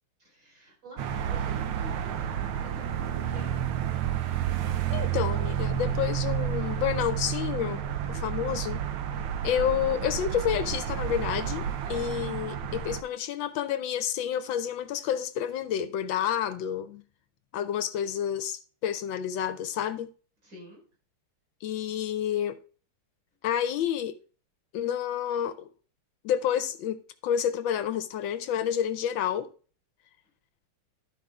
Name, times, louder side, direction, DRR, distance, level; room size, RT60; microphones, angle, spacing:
voice 1, 0.2-3.6 11.8-12.4 14.9-15.1 20.4-20.8, right 1 dB, 35° right, 4.5 m, -49 dB
sound 1, 1.0-13.0, right 9 dB, 75° right, 1.5 m, -30 dB
voice 2, 4.9-7.8 8.1-8.8 9.4-11.6 11.9-17.0 17.5-20.1 21.6-22.6 23.4-24.1 24.7-25.7 26.2-29.5, left 9 dB, 75° left, 1.2 m, -29 dB
12.5 x 4.8 x 3.5 m
omnidirectional pair, 2.4 m